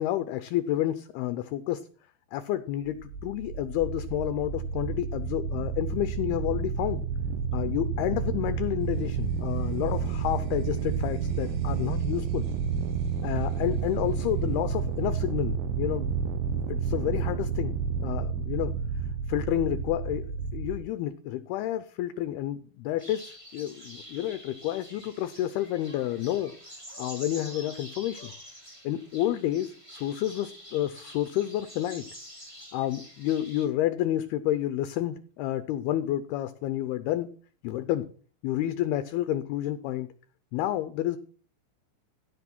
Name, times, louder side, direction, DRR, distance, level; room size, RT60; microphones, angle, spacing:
voice 1, 0.0-1.9 2.3-7.0 7.5-12.5 13.2-16.1 16.5-17.7 18.0-18.7 19.3-20.3 20.5-26.5 27.0-28.3 28.8-32.1 32.7-37.3 37.6-38.1 38.4-40.1 40.5-41.2, left 13 dB, 80° left, 12 dB, 2.3 m, -30 dB
sound 1, 2.8-20.8, right 6 dB, 80° right, 3.4 m, -30 dB
sound 2, 8.8-15.4, right 13 dB, 50° right, 2.8 m, -42 dB
sound 3, 23.0-33.7, equal, 10° right, 1.4 m, -47 dB
16.0 x 6.2 x 6.0 m, 0.43 s
omnidirectional pair, 5.2 m